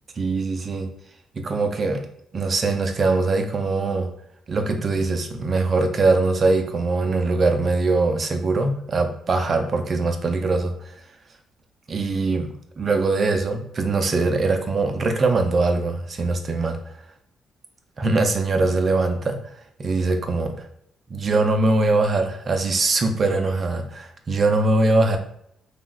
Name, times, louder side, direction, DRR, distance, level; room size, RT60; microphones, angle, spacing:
voice 1, 0.2-0.9 1.3-2.0 2.3-4.1 4.5-10.7 11.9-16.8 18.0-19.4 19.8-20.7 21.1-25.2, right 3 dB, 40° right, 5 dB, 0.5 m, -22 dB
3.3 x 2.3 x 2.4 m, 0.71 s
cardioid pair, 90°, 0 cm